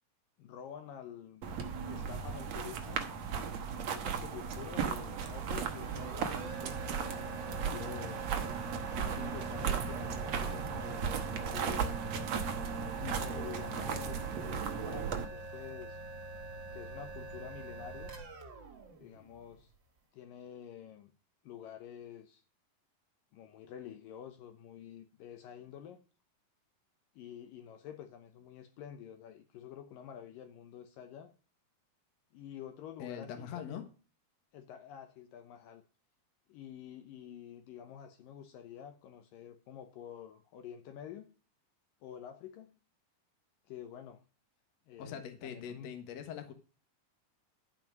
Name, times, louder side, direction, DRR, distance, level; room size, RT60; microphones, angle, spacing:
voice 1, 0.4-1.4 1.8-3.1 3.7-8.3 8.9-11.9 13.2-16.0 16.7-18.1 19.0-19.7 20.1-21.1 21.4-22.4 23.3-26.0 27.2-31.3 32.3-33.9 34.5-35.8 36.5-41.4 42.0-42.8 43.7-44.2 44.9-45.9, left 9 dB, 75° left, 2.4 m, -48 dB
sound 1, 1.4-15.2, right 7 dB, 60° right, 1.9 m, -36 dB
sound 2, 5.2-19.8, right 1 dB, 40° right, 2.0 m, -46 dB
sound 3, 10.2-18.3, right 7 dB, 75° right, 2.6 m, -52 dB
voice 2, 33.0-33.8 45.0-46.5, left 8 dB, 55° left, 2.1 m, -42 dB
13.0 x 5.0 x 6.0 m
omnidirectional pair, 4.3 m